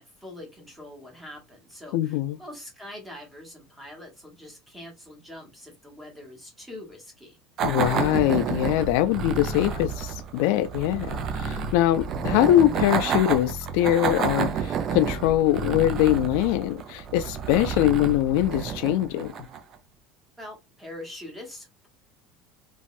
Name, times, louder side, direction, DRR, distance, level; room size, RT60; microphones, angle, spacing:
voice 1, 0.0-7.4 20.4-21.9, left 1 dB, 10° right, 1.3 m, -43 dB
voice 2, 1.9-2.4 7.6-19.3, left 13 dB, 70° left, 0.3 m, -23 dB
sound 1, 7.6-19.8, right 6 dB, 35° right, 0.4 m, -30 dB
3.1 x 2.6 x 2.4 m
cardioid pair, 165°, 0 cm